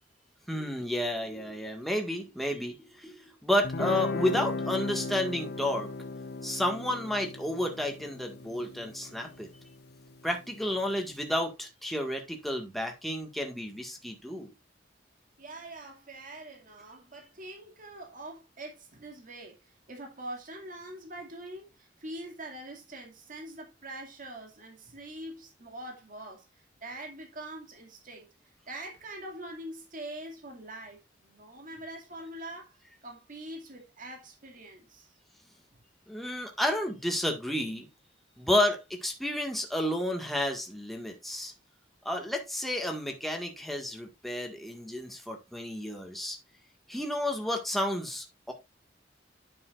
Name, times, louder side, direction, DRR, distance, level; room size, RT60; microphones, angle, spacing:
voice 1, 0.5-5.9 6.4-9.5 10.2-14.5 36.1-37.9 38.4-41.5 42.1-46.4 46.9-48.5, left 1 dB, ahead, 1.8 m, -31 dB
Guitar, 3.6-10.8, left 3 dB, 60° left, 0.6 m, -37 dB
voice 2, 15.4-19.6 19.9-26.4 26.8-28.3 28.7-32.7 33.0-35.1, right 1 dB, 50° right, 2.4 m, -43 dB
9.8 x 7.1 x 2.5 m
head